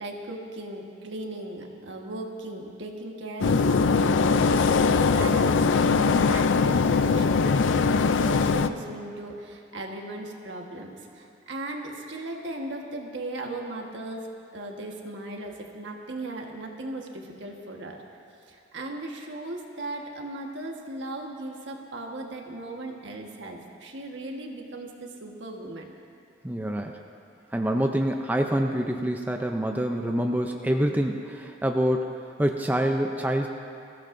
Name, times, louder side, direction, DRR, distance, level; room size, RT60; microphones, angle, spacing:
voice 1, 0.0-18.0 18.4-25.9, right 2 dB, 70° right, 1 dB, 1.4 m, -37 dB
sound 1, 3.4-8.7, left 4 dB, 75° left, 0.4 m, -21 dB
voice 2, 26.4-27.0 27.5-33.5, equal, 10° right, 3 dB, 0.5 m, -26 dB
22.5 x 15.0 x 2.6 m, 2.5 s
head